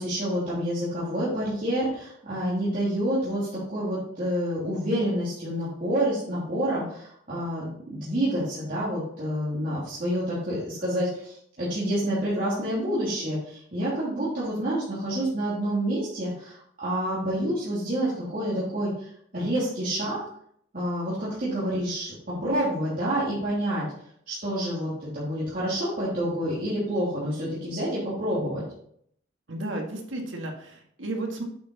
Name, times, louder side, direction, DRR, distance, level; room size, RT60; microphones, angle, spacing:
voice 1, 0.0-20.2 20.7-23.8 24.3-28.6, equal, 45° right, -10 dB, 2.9 m, -28 dB
voice 2, 29.5-31.4, right 2 dB, 90° right, 1 dB, 1.9 m, -33 dB
8.4 x 5.9 x 4.1 m, 0.68 s
head